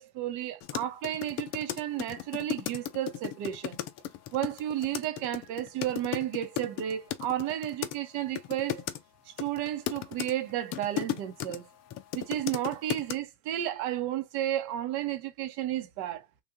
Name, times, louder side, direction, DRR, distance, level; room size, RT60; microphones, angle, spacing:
voice 1, 0.0-3.8 4.3-8.9 9.3-11.7 12.1-16.3, right 12 dB, 50° right, 1.0 m, -32 dB
sound 1, 0.6-8.0 8.4-9.0 9.4-11.6 11.9-13.1, left 12 dB, 35° left, 0.5 m, -35 dB
3.2 x 2.5 x 3.8 m
hypercardioid pair, 105°, 48 cm